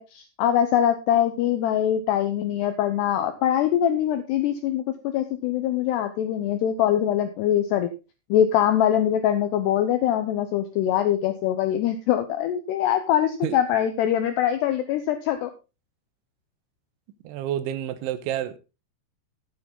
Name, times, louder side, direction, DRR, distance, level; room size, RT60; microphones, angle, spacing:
voice 1, 0.0-4.8 5.1-7.9 8.3-15.5, left 10 dB, 75° left, 2.6 m, -23 dB
voice 2, 17.2-18.6, right 11 dB, 80° right, 3.1 m, -29 dB
13.5 x 9.6 x 3.7 m
omnidirectional pair, 5.6 m